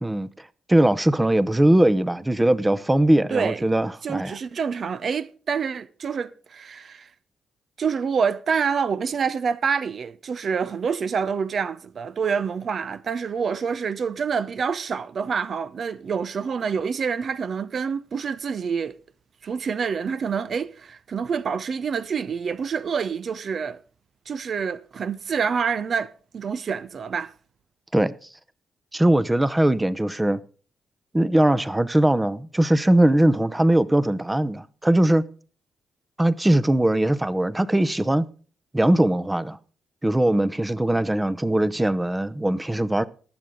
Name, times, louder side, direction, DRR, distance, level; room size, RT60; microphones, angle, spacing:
voice 1, 0.0-4.4 27.9-28.1 28.9-30.4 31.1-35.2 36.2-38.3 38.7-39.6 40.0-43.0, right 1 dB, 15° right, 0.7 m, -20 dB
voice 2, 3.3-3.6 4.0-7.1 7.8-19.0 19.4-23.8 24.3-27.3, right 6 dB, 55° right, 0.5 m, -27 dB
19.0 x 7.6 x 3.8 m
supercardioid pair, 65°, 0 cm